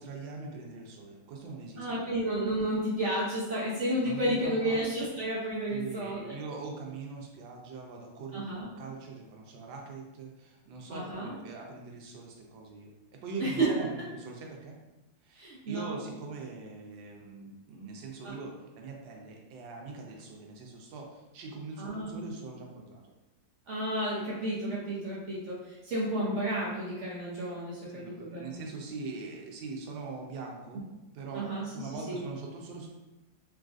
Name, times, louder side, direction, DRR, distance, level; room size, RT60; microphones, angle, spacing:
voice 1, 0.0-2.3 4.0-4.8 5.6-12.9 13.2-14.7 15.2-23.0 27.9-30.8 31.1-31.5 31.7-32.9, right 4 dB, 85° right, 0 dB, 1.4 m, -42 dB
voice 2, 1.8-6.3 8.3-8.7 10.9-11.3 13.4-13.7 15.3-16.0 18.2-18.3 21.8-22.2 23.7-27.9 28.2-28.7 31.3-31.6 32.1-32.2, right 1 dB, 70° right, -6 dB, 0.7 m, -31 dB
3.8 x 2.4 x 2.4 m, 1.0 s
omnidirectional pair, 2.0 m